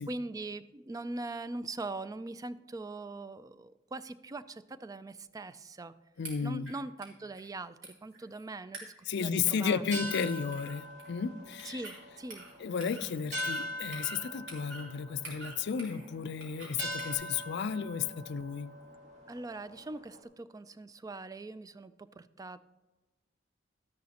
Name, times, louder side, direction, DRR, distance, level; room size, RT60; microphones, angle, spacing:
voice 1, 0.0-5.9 6.4-8.9 9.2-10.1 11.7-12.5 19.3-22.6, right 2 dB, 20° right, 14 dB, 0.3 m, -41 dB
voice 2, 6.2-6.7 9.1-11.8 12.6-18.7, left 6 dB, 60° left, 13 dB, 0.4 m, -33 dB
sound 1, 6.2-6.7 7.0-7.1 7.3-7.5 7.8-8.4 8.7-9.1 9.5-9.7 10.0-10.3 10.5-11.2 11.6-12.0 12.3-12.5 12.8-13.1 13.4-14.2 14.5-14.9 15.2-16.1 16.4-16.7 17.0-17.1, right 2 dB, 75° right, 3.2 m, -46 dB
sound 2, 9.7-20.2, left 1 dB, 40° right, 1.6 m, -43 dB
13.0 x 10.5 x 2.9 m, 1.1 s
head